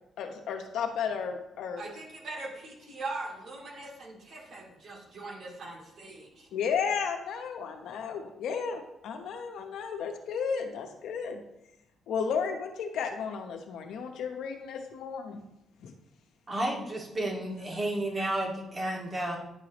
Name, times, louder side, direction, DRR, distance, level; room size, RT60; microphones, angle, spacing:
voice 1, 0.2-1.9 6.5-11.4 12.1-15.4 15.8-15.9, left 6 dB, 80° left, 4 dB, 0.9 m, -33 dB
voice 2, 1.8-6.5, right 2 dB, 60° right, -2 dB, 2.2 m, -41 dB
voice 3, 16.5-19.4, right 1 dB, 35° right, -2 dB, 2.0 m, -32 dB
10.5 x 4.8 x 3.0 m, 0.85 s
cardioid pair, 90°, 0 cm